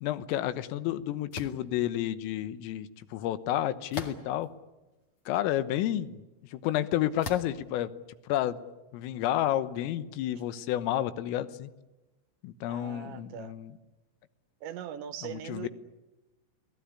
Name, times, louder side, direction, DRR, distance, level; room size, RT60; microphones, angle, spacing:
voice 1, 0.0-4.5 5.3-6.2 6.5-7.9 8.3-8.6 8.9-11.7 12.4-13.7 15.2-15.7, left 12 dB, 85° left, 13 dB, 3.7 m, -30 dB
sound 1, 1.3-1.6 3.9-4.5 5.2-5.3 7.2-7.6, left 4 dB, 45° left, 1.9 m, -38 dB
voice 2, 12.7-13.5 14.6-15.7, right 10 dB, 75° right, 12 dB, 3.3 m, -40 dB
28.0 x 19.0 x 9.8 m, 1.1 s
omnidirectional pair, 5.7 m